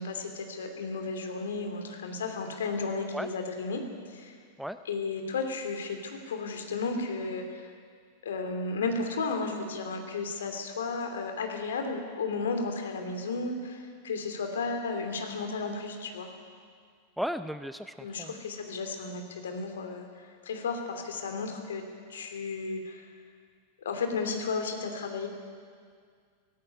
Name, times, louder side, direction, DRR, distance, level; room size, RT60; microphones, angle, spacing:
voice 1, 0.0-4.4 4.8-7.7 8.2-16.3 18.0-21.8 22.1-23.1 23.8-25.3, left 4 dB, 65° left, 5 dB, 2.8 m, -33 dB
voice 2, 17.2-18.3, equal, ahead, 11 dB, 0.5 m, -35 dB
18.0 x 15.5 x 9.7 m, 2.1 s
figure-of-eight pair, 90°, 0 cm